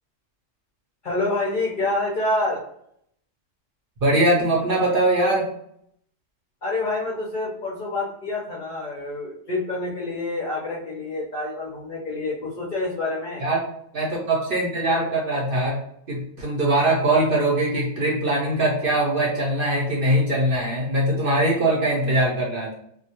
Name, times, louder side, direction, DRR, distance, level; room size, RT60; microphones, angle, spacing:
voice 1, 1.0-2.6 6.6-13.4, left 2 dB, 55° left, -4 dB, 0.6 m, -27 dB
voice 2, 4.0-5.5 13.4-13.6 13.9-15.8 16.1-22.7, right 1 dB, 55° right, -3 dB, 0.7 m, -21 dB
2.2 x 2.1 x 2.8 m, 0.69 s
omnidirectional pair, 1.3 m